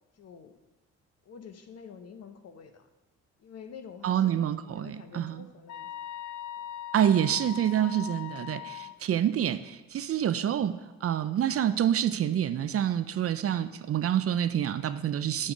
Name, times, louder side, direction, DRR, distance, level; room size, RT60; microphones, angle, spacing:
voice 1, 0.2-0.5 1.3-2.9 3.4-5.9 6.6-6.7 8.8-9.0 13.7-13.9 15.3-15.5, left 6 dB, 55° left, 8 dB, 1.0 m, -48 dB
voice 2, 4.0-5.4 6.9-15.5, right 10 dB, 50° right, 13 dB, 0.5 m, -27 dB
sound 1, 5.7-8.9, left 11 dB, 70° left, 0.5 m, -40 dB
8.7 x 8.4 x 5.0 m, 1.1 s
cardioid pair, 90°, 30 cm